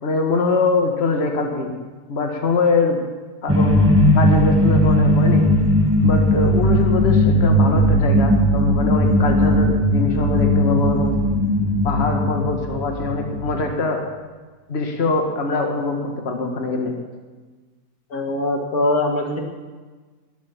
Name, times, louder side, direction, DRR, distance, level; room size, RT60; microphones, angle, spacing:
voice 1, 0.0-1.7 2.1-3.0 3.4-3.9 4.1-5.5 6.0-11.2 11.8-14.0 14.7-16.9, left 3 dB, 45° left, 3 dB, 1.7 m, -23 dB
sound 1, 3.5-13.7, left 1 dB, 10° right, 1.3 m, -17 dB
voice 2, 18.1-19.4, left 2 dB, 70° left, 2 dB, 2.3 m, -22 dB
21.0 x 7.2 x 7.2 m, 1.3 s
omnidirectional pair, 1.6 m